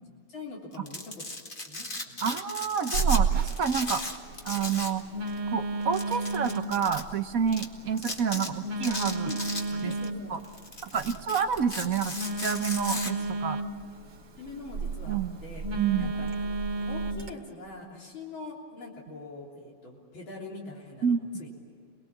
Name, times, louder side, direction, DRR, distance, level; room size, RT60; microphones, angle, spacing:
voice 1, 0.3-1.2 1.7-2.4 8.3-8.5 9.2-9.5 9.8-10.4 10.9-11.2 13.2-13.3 14.4-15.7 16.0-16.6 16.9-21.5, left 3 dB, 75° left, -3 dB, 4.4 m, -43 dB
Domestic sounds home sounds, 0.7-3.2 3.5-5.0 5.3-5.4 5.9-7.0 7.5-7.6 8.0-8.5 8.8-10.1 10.4-13.1, left 2 dB, 25° left, 2.2 m, -36 dB
voice 2, 2.2-4.0 4.4-5.0 5.5-9.3 9.8-9.9 10.3-10.4 10.8-13.6 15.1-15.4 15.8-16.2 21.0-21.3, right 7 dB, 55° right, 9 dB, 1.0 m, -29 dB
Telephone, 2.9-17.3, right 4 dB, 70° right, 2.9 m, -33 dB
28.5 x 21.0 x 7.4 m, 2.3 s
omnidirectional pair, 2.2 m